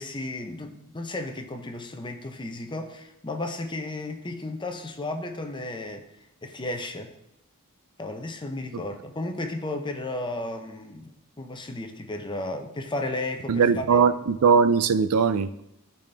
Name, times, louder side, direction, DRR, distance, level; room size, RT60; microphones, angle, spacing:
voice 1, 0.0-6.1 6.4-7.1 8.0-11.1 11.4-13.8, left 2 dB, 20° left, 5 dB, 0.7 m, -34 dB
voice 2, 13.5-15.6, right 5 dB, 80° right, 13 dB, 0.4 m, -20 dB
12.0 x 4.2 x 3.4 m, 0.84 s
head